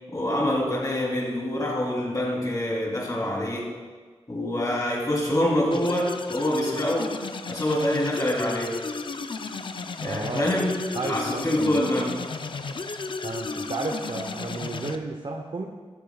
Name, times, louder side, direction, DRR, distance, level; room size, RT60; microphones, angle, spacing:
voice 1, 0.1-3.7 4.3-7.2 7.5-8.8 10.0-10.7 11.0-12.1, left 1 dB, 35° left, -3 dB, 3.2 m, -25 dB
sound 1, 5.7-15.0, left 4 dB, 50° left, 0.6 m, -34 dB
voice 2, 10.0-10.5 10.9-11.8 13.2-15.6, right 3 dB, 50° right, 2 dB, 0.9 m, -32 dB
13.5 x 13.0 x 2.4 m, 1.5 s
cardioid pair, 65°, 11 cm